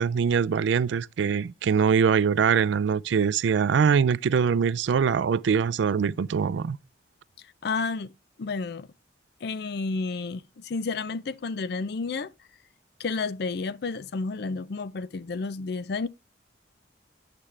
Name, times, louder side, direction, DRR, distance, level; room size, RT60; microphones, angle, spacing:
voice 1, 0.0-6.8, right 6 dB, 70° right, 0.3 m, -23 dB
voice 2, 7.6-8.1 8.4-8.9 9.4-12.3 13.0-16.1, left 4 dB, 55° left, 0.4 m, -31 dB
8.7 x 6.7 x 3.2 m
head